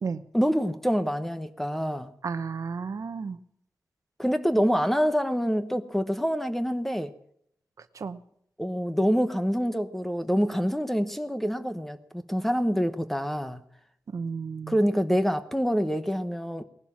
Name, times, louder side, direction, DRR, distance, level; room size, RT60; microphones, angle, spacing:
voice 1, 0.3-2.1 4.2-7.1 8.6-12.0 12.3-13.6 14.7-16.6, equal, 5° left, 1.0 m, -26 dB
voice 2, 2.2-3.4 7.8-8.2 14.1-14.8, right 5 dB, 55° right, 0.9 m, -33 dB
19.0 x 11.5 x 6.2 m
wide cardioid pair, 150°, 6 cm